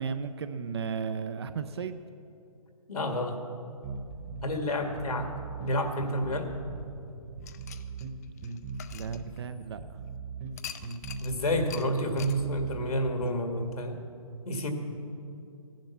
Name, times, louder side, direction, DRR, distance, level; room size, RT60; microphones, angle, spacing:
voice 1, 0.0-2.0 8.9-9.8, right 6 dB, 45° right, 11 dB, 0.5 m, -34 dB
voice 2, 2.9-3.4 4.4-5.3 5.6-6.5 11.2-14.0 14.5-14.7, equal, 80° left, 5 dB, 2.0 m, -29 dB
sound 1, 3.8-13.4, right 4 dB, 25° right, 1.1 m, -40 dB
sound 2, 7.4-9.8 10.6-11.3 11.7-11.9 12.2-12.4, left 10 dB, 25° left, 0.4 m, -44 dB
14.5 x 10.5 x 5.8 m, 2.6 s
hypercardioid pair, 150°, 19 cm